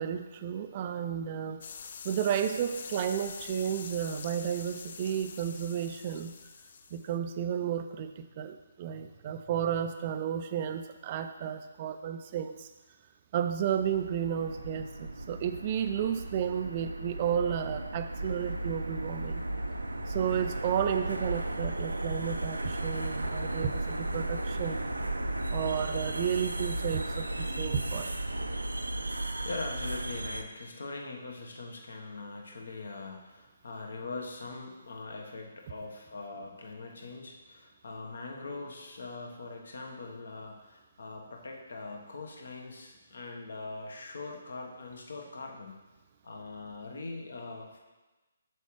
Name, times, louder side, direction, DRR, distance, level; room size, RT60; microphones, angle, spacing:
voice 1, 0.0-1.6 2.0-6.3 6.9-12.7 13.3-19.4 20.1-24.8 25.5-28.2, right 9 dB, 35° right, 8 dB, 0.3 m, -32 dB
sound 1, 1.6-7.1, left 6 dB, 50° left, 0.4 m, -45 dB
sound 2, 13.7-30.4, right 1 dB, 85° right, 0.5 m, -35 dB
voice 2, 29.1-45.8 46.2-47.8, left 3 dB, 65° left, 1 dB, 1.2 m, -42 dB
7.7 x 6.2 x 3.2 m, 1.1 s
figure-of-eight pair, 140°, 0 cm